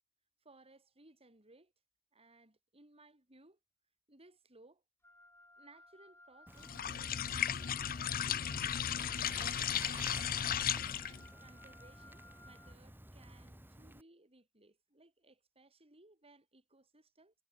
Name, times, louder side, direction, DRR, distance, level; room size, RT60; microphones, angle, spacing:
voice 1, 0.4-1.7 2.1-3.6 4.1-4.8 5.6-9.8 10.9-17.3, right 2 dB, 30° right, 5.6 m, -63 dB
Wind instrument woodwind instrument, 5.0-12.8, left 1 dB, 10° left, 4.9 m, -59 dB
Bicycle, 6.5-14.0, right 1 dB, 10° right, 2.0 m, -52 dB
sound 1, 6.6-11.3, left 9 dB, 45° left, 0.6 m, -35 dB
head